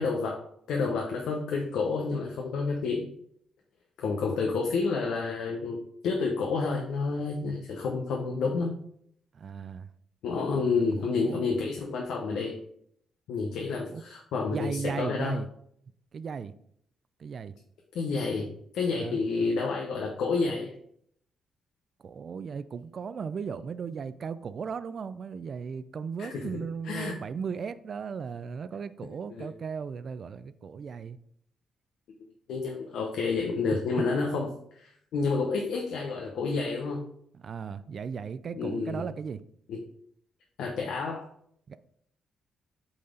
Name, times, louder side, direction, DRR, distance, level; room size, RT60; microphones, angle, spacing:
voice 1, 0.0-3.1 4.0-8.8 10.2-12.6 13.3-15.4 17.9-18.5 18.7-20.7 26.2-26.5 26.8-27.1 29.4-29.5 32.5-34.5 34.7-37.0 38.5-39.0 39.7-39.8 40.6-41.3, left 4 dB, 85° left, 0 dB, 0.9 m, -29 dB
voice 2, 9.3-9.9 10.9-11.5 13.7-14.0 14.5-15.5 16.1-16.5 17.2-17.5 18.9-19.2 22.0-31.2 37.3-39.4 41.7-41.8, right 6 dB, 50° right, 13 dB, 0.4 m, -36 dB
8.6 x 4.1 x 3.8 m, 0.69 s
cardioid pair, 110°, 0 cm